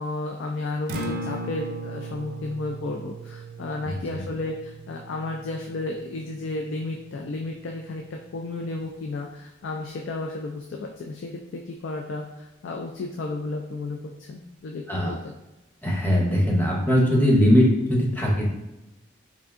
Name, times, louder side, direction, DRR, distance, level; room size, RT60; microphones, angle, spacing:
voice 1, 0.0-15.3, left 2 dB, 80° left, 2 dB, 0.4 m, -33 dB
Acoustic guitar, 0.9-8.9, right 2 dB, 55° right, 0.4 m, -39 dB
voice 2, 15.8-18.5, equal, 10° left, -2 dB, 0.7 m, -20 dB
3.4 x 2.6 x 3.5 m, 0.96 s
head